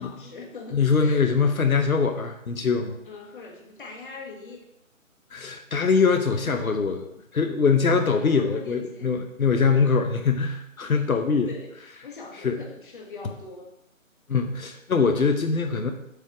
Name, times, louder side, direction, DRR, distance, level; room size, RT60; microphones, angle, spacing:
voice 1, 0.0-1.3 3.0-4.6 7.9-9.2 10.9-13.7, left 4 dB, 40° left, 0 dB, 1.4 m, -42 dB
voice 2, 0.7-3.0 5.3-7.0 7.3-11.5 12.4-12.6 14.3-15.9, left 5 dB, 85° left, 5 dB, 0.9 m, -23 dB
7.9 x 3.5 x 5.9 m, 0.83 s
figure-of-eight pair, 150°, 41 cm